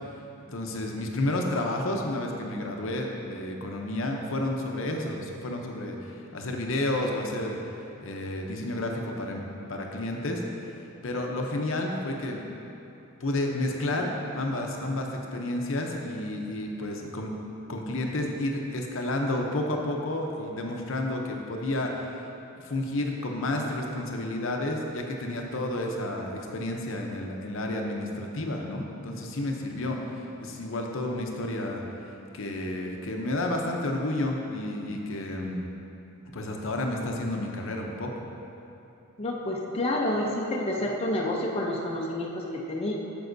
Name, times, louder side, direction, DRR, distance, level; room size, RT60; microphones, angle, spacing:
voice 1, 0.5-7.6 8.0-9.4 9.7-10.4 11.0-12.4 13.2-17.3 17.7-22.2 22.6-31.8 32.3-35.6 36.3-38.1, left 1 dB, 65° left, 1 dB, 0.7 m, -31 dB
voice 2, 39.2-42.9, left 1 dB, 30° left, -2 dB, 0.6 m, -29 dB
9.4 x 6.9 x 2.6 m, 2.9 s
head